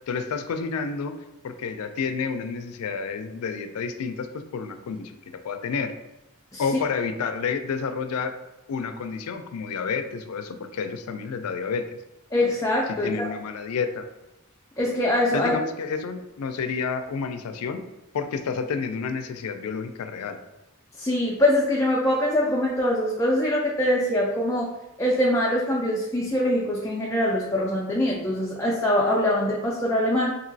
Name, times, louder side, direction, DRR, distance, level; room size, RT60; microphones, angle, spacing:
voice 1, 0.1-1.2 1.4-5.1 5.4-5.9 6.6-8.3 8.7-11.8 13.0-14.0 15.3-17.8 18.1-20.4, left 5 dB, 90° left, 7 dB, 0.4 m, -30 dB
voice 2, 12.3-13.3 14.8-15.5 21.0-24.7 25.0-30.4, left 1 dB, 15° left, -5 dB, 0.3 m, -23 dB
2.9 x 2.7 x 2.6 m, 0.94 s
head